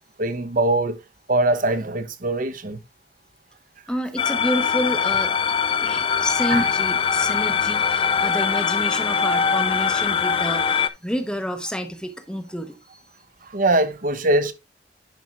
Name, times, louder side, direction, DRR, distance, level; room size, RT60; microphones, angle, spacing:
voice 1, 0.2-1.0 1.3-2.8 6.5-6.7 13.5-14.5, right 2 dB, 45° right, 1.0 m, -22 dB
voice 2, 3.9-5.3 5.8-13.0, equal, 5° left, 0.8 m, -29 dB
sound 1, 4.2-10.9, left 6 dB, 30° left, 0.4 m, -22 dB
10.5 x 4.4 x 3.7 m
head